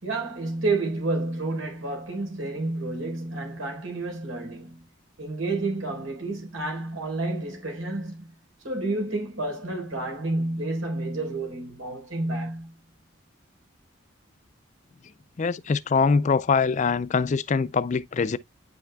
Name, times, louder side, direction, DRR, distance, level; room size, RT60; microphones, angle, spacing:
voice 1, 0.0-4.8 5.2-8.3 8.6-12.7, right 2 dB, 85° right, 4.0 m, -30 dB
voice 2, 15.4-18.4, left 5 dB, 35° left, 0.4 m, -23 dB
9.6 x 5.6 x 2.3 m
head